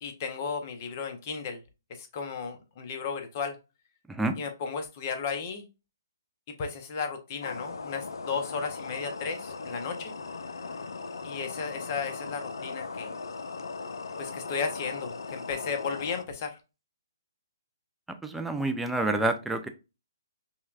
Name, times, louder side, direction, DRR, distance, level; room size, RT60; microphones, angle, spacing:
voice 1, 0.0-1.6 1.9-3.6 4.4-5.7 6.6-10.1 11.2-13.1 14.2-16.6, left 5 dB, 40° left, 5 dB, 0.8 m, -34 dB
sound 1, 7.4-16.2, left 4 dB, 80° left, 0.5 m, -38 dB
voice 2, 18.2-19.7, right 2 dB, 5° right, 6 dB, 0.3 m, -28 dB
5.5 x 2.2 x 2.4 m, 0.29 s
hypercardioid pair, 150°, 2 cm